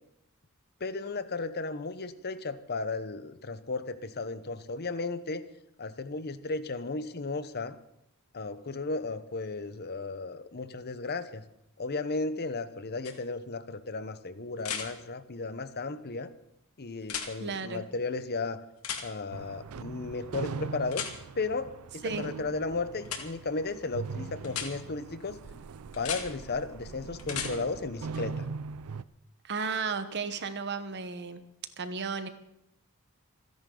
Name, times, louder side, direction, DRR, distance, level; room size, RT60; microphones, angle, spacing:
voice 1, 0.8-5.4 5.8-7.7 8.3-11.4 11.8-16.3 16.8-18.6 19.0-21.1 21.3-25.4 25.9-28.5, left 3 dB, 50° left, 12 dB, 0.9 m, -34 dB
sound 1, 13.0-13.1 14.6-14.9 17.0-17.3 18.8-19.0 20.9-21.1 23.0-23.2 24.4-24.7 25.9-26.2 27.2-27.5 29.6-29.7, left 7 dB, 85° left, 2.1 m, -34 dB
voice 2, 17.4-17.8 22.0-22.3 29.4-31.4 31.8-32.3, right 5 dB, 55° right, 10 dB, 1.1 m, -34 dB
sound 2, 19.3-29.0, right 5 dB, 85° right, 0.5 m, -41 dB
27.0 x 10.5 x 3.9 m, 0.80 s
head